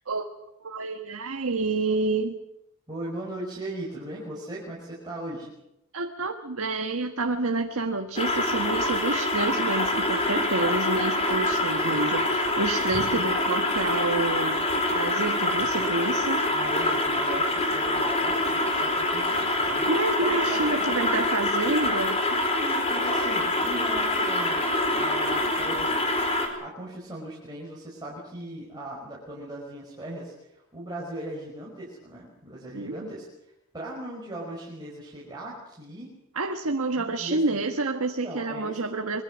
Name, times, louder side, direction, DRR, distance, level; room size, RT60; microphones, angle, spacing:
voice 1, 0.6-2.4 5.9-16.4 19.9-22.4 32.7-33.1 36.3-39.2, right 3 dB, 80° right, 4 dB, 1.4 m, -28 dB
voice 2, 2.9-5.5 12.9-13.3 16.5-19.9 20.2-21.1 22.5-24.7 25.0-26.1 26.6-36.1 37.0-37.6 38.1-39.2, right 1 dB, 20° right, -5 dB, 5.5 m, -38 dB
sound 1, 8.2-26.5, left 2 dB, 30° left, 4.4 m, -25 dB
25.5 x 22.5 x 6.3 m, 0.86 s
head